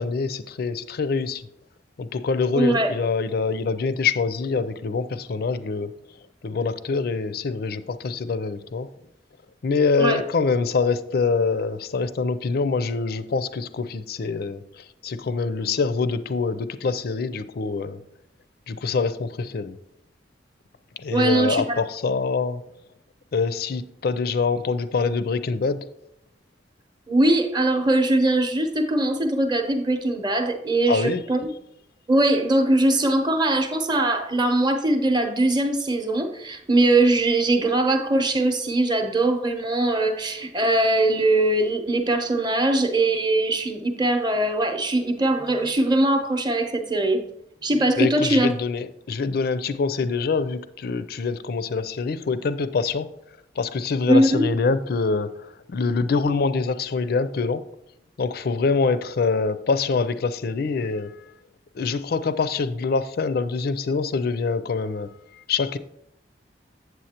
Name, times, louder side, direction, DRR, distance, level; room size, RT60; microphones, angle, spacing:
voice 1, 0.0-1.4 2.0-5.9 6.4-8.9 9.6-18.0 18.7-19.8 21.0-22.6 23.3-25.9 30.9-31.2 48.0-53.1 53.6-57.6 58.2-61.3 61.8-65.1 65.4-65.8, left 4 dB, 55° left, 0.4 m, -25 dB
voice 2, 2.5-2.9 10.0-10.2 21.1-21.8 27.1-31.5 32.1-47.2 47.6-48.5 54.1-54.4, right 2 dB, 25° right, 0.8 m, -21 dB
8.0 x 7.7 x 2.9 m
head